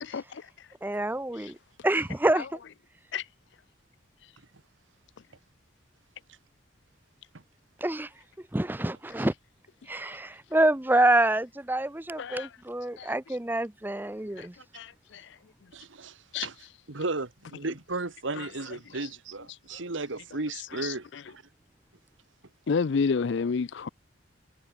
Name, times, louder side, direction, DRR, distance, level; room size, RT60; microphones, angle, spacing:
voice 1, 0.0-0.4 1.4-1.5 2.3-2.7 3.1-3.2 12.2-12.5 13.0-13.4 14.4-14.5 14.7-15.3 16.3-16.5 17.6-17.7 18.3-19.1 20.7-21.3 22.7-23.9, left 5 dB, 60° left, 0.4 m, -31 dB
voice 2, 0.8-1.6 1.8-2.5 7.8-8.1 8.5-9.3 9.9-14.5, right 1 dB, 10° right, 0.6 m, -26 dB
voice 3, 15.7-21.4, right 3 dB, 70° right, 1.5 m, -35 dB
head